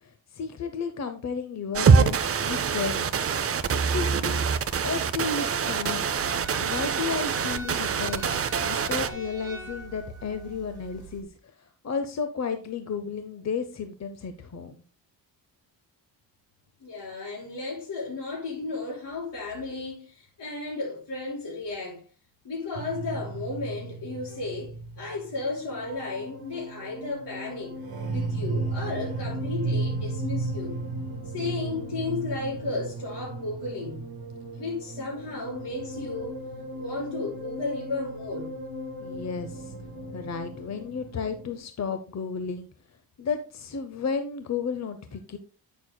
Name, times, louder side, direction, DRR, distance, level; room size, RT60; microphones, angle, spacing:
voice 1, 0.0-3.1 3.9-4.5 4.8-6.1 6.6-8.3 8.6-14.8 39.0-39.7 40.1-42.7 43.2-45.4, left 5 dB, 40° left, 0.7 m, -33 dB
sound 1, 1.7-9.1, right 5 dB, 35° right, 0.5 m, -24 dB
sound 2, 6.2-11.2, right 3 dB, 10° right, 4.5 m, -41 dB
voice 2, 16.8-22.0 22.4-27.8 28.1-30.7 31.3-34.1 34.5-36.3 36.7-38.5, left 3 dB, 65° left, 5.1 m, -34 dB
sound 3, 22.7-41.6, right 2 dB, 55° right, 2.4 m, -35 dB
11.0 x 8.1 x 2.2 m
wide cardioid pair, 175°, 44 cm